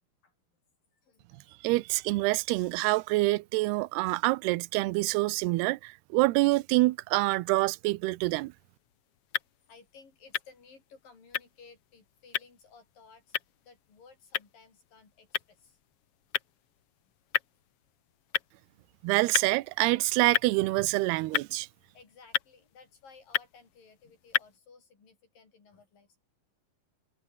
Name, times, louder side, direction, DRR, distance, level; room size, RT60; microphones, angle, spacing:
voice 1, 0.9-1.6 9.7-15.8 18.3-18.5 21.9-26.2, left 5 dB, 50° left, 7.3 m, -57 dB
voice 2, 1.6-8.5 19.0-21.7, right 21 dB, 80° right, 2.6 m, -26 dB
sound 1, 8.5-24.6, left 9 dB, 85° left, 1.3 m, -37 dB
omnidirectional pair, 5.0 m